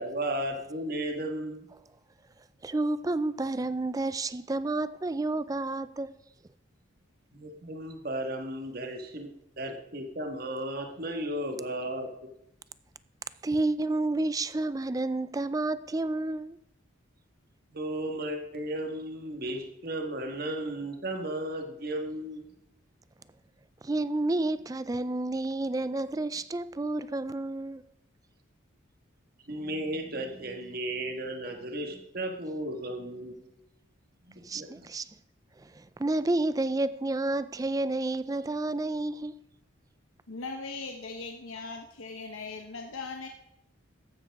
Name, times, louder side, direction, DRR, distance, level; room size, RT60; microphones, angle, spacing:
voice 1, 0.0-1.7 7.3-12.1 17.7-22.5 29.5-33.4 34.2-34.9, right 1 dB, 45° right, 1.6 m, -35 dB
voice 2, 2.6-6.2 13.4-16.6 23.8-27.8 34.4-35.1 35.6-39.4, right 2 dB, 15° right, 0.3 m, -30 dB
voice 3, 40.3-43.3, left 4 dB, 85° left, 1.0 m, -39 dB
14.0 x 10.5 x 3.6 m
head